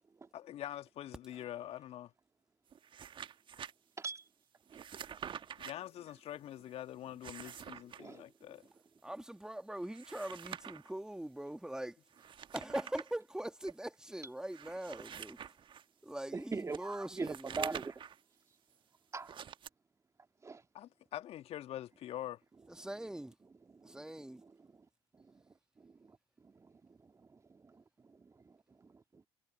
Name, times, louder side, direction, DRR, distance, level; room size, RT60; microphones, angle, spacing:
voice 1, 0.3-2.1 5.6-8.6 20.7-22.4, left 12 dB, 45° left, 2.0 m, -45 dB
sound 1, 2.7-3.7 4.7-5.7 7.0-8.0 9.8-10.9 12.1-13.1 13.7-13.8 14.5-15.8 16.7-18.2 19.2-19.7, right 8 dB, 35° right, 1.6 m, -47 dB
voice 2, 9.0-12.0 12.5-15.4 16.0-17.8 22.7-23.3 23.8-24.4, right 1 dB, 5° right, 2.2 m, -42 dB
voice 3, 16.3-17.9 19.1-19.4 20.4-20.6 23.6-24.9 25.1-25.4 25.8-26.2 26.4-29.2, right 4 dB, 20° right, 2.6 m, -44 dB
figure-of-eight pair, 60°, 14 cm